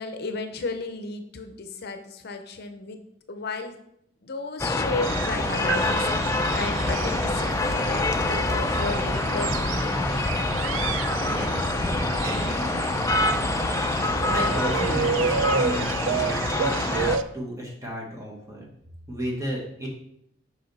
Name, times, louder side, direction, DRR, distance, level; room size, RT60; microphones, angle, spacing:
voice 1, 0.0-3.0 3.3-3.8 4.2-10.2 15.9-16.0, left 3 dB, 55° left, 7 dB, 0.6 m, -34 dB
sound 1, 4.6-17.2, left 2 dB, 15° left, 0.3 m, -26 dB
sound 2, 5.0-17.2, right 6 dB, 85° right, 0.3 m, -31 dB
voice 2, 11.1-11.8 12.2-12.8 13.9-18.7 19.1-19.9, equal, 15° right, -3 dB, 1.2 m, -33 dB
5.6 x 5.0 x 4.0 m, 0.75 s
head